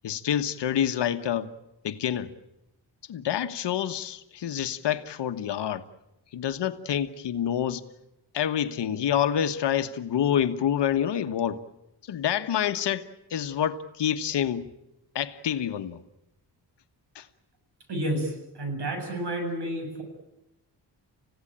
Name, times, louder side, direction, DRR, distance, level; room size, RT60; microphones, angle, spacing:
voice 1, 0.0-1.5 1.8-2.3 3.1-5.8 6.3-7.8 8.3-11.6 12.1-14.7 15.1-16.0 17.1-17.2, left 9 dB, 70° left, 1.3 m, -27 dB
voice 2, 17.9-20.0, right 1 dB, 65° right, 7.3 m, -30 dB
29.5 x 16.0 x 8.9 m
cardioid pair, 125°, 43 cm